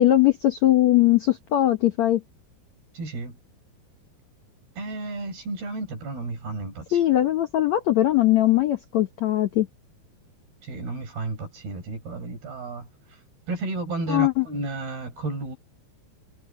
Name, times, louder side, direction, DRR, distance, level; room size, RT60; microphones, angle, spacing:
voice 1, 0.0-2.2 6.9-9.7 14.1-14.4, left 14 dB, 80° left, 1.6 m, -20 dB
voice 2, 2.9-3.4 4.8-7.0 10.6-13.2 13.5-15.6, right 3 dB, 60° right, 7.6 m, -32 dB
omnidirectional pair, 5.0 m